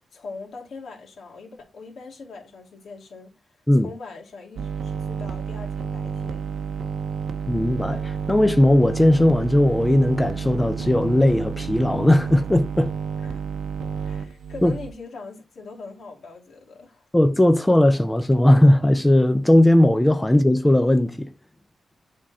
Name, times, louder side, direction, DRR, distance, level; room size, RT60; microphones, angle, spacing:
voice 1, 0.1-6.4 13.2-13.4 14.0-17.1, left 3 dB, 70° left, 2.3 m, -41 dB
sound 1, 4.6-14.9, right 6 dB, 80° right, 0.7 m, -30 dB
voice 2, 7.5-12.9 14.6-14.7 17.1-21.3, left 1 dB, 10° left, 0.4 m, -18 dB
8.6 x 3.7 x 4.1 m
wide cardioid pair, 135°, 0 cm